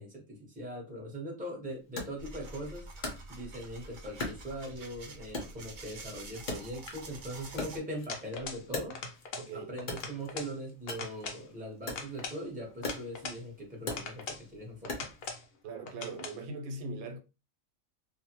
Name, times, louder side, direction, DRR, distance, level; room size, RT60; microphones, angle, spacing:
voice 1, 0.0-2.9 3.3-9.0 9.5-15.1, equal, 5° right, 0.7 m, -41 dB
Wood, 2.0-3.7 4.2-5.0 5.3-7.2 7.4-9.4 9.8-15.3, left 2 dB, 45° left, 0.7 m, -41 dB
sound 1, 2.2-7.8, right 2 dB, 55° right, 0.5 m, -47 dB
sound 2, 8.1-8.7 8.9-9.5 9.8-10.5 10.9-11.4 11.9-13.4 13.9-14.5 14.8-15.5 15.9-16.4, left 4 dB, 70° left, 1.0 m, -41 dB
voice 2, 9.4-9.7 15.6-17.2, right 3 dB, 90° right, 1.0 m, -40 dB
2.5 x 2.1 x 2.8 m
omnidirectional pair, 1.4 m